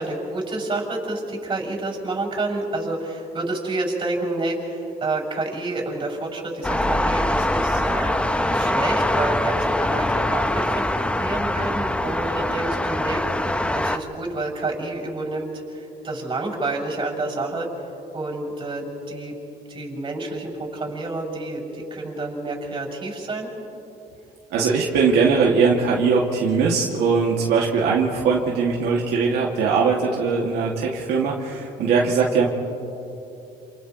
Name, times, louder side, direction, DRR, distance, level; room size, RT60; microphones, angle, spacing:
voice 1, 0.0-8.1 8.5-10.8 11.1-17.7 18.1-19.3 19.7-23.5, right 2 dB, 30° right, -1 dB, 6.7 m, -29 dB
sound 1, 6.6-14.0, left 1 dB, 5° left, 0.8 m, -23 dB
voice 2, 24.5-32.5, right 5 dB, 80° right, -3 dB, 2.3 m, -20 dB
29.0 x 28.5 x 3.2 m, 2.9 s
cardioid pair, 110°, 17 cm